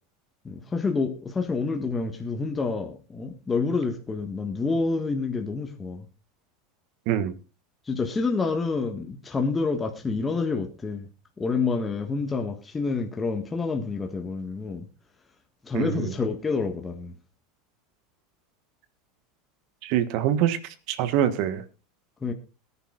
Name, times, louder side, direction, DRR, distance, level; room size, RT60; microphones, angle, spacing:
voice 1, 0.4-6.0 7.9-11.1 11.4-14.9 15.7-17.1 22.2-22.3, left 4 dB, 20° left, 4 dB, 1.7 m, -28 dB
voice 2, 7.1-7.4 15.7-16.1 19.8-20.6 20.9-21.6, right 10 dB, 55° right, 13 dB, 1.4 m, -24 dB
21.5 x 10.5 x 2.5 m, 0.31 s
hypercardioid pair, 85°, 0 cm